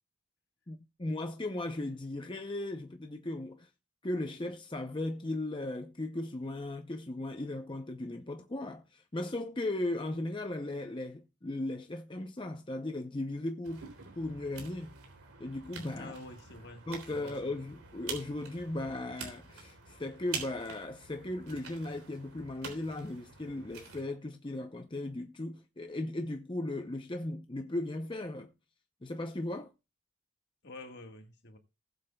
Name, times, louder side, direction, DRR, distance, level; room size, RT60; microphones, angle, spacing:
voice 1, 0.7-3.7 4.0-13.9 14.2-14.9 15.4-16.1 16.9-28.5 29.0-29.7, left 2 dB, 20° left, 0.6 m, -37 dB
sound 1, 13.6-24.0, right 5 dB, 85° right, 3.4 m, -46 dB
voice 2, 16.0-17.5 30.6-31.6, left 2 dB, 50° left, 1.6 m, -48 dB
19.0 x 8.0 x 2.3 m
head